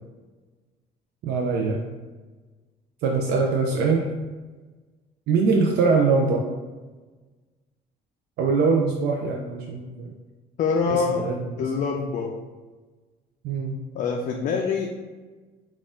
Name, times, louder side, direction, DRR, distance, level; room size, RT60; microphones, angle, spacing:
voice 1, 1.2-1.8 3.0-4.0 5.3-6.4 8.4-10.1 10.9-11.6 13.4-13.8, right 4 dB, 75° right, 0 dB, 0.5 m, -23 dB
voice 2, 10.6-11.3 11.6-12.4 13.9-14.9, left 5 dB, 50° left, 2 dB, 0.4 m, -25 dB
4.1 x 2.4 x 3.7 m, 1.3 s
cardioid pair, 110°, 17 cm